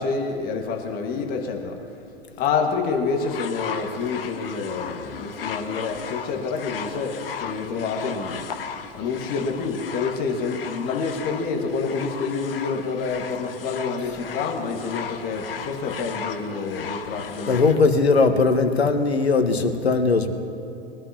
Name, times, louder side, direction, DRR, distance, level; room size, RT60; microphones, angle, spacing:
voice 1, 0.0-1.7 2.4-8.5 8.9-17.7, left 4 dB, 30° left, 2 dB, 1.8 m, -28 dB
sound 1, 3.2-17.8 18.7-18.8, left 7 dB, 60° left, 1.1 m, -36 dB
voice 2, 17.5-20.3, left 4 dB, 75° left, 7 dB, 1.5 m, -19 dB
22.5 x 12.0 x 2.9 m, 3.0 s
figure-of-eight pair, 110°, 32 cm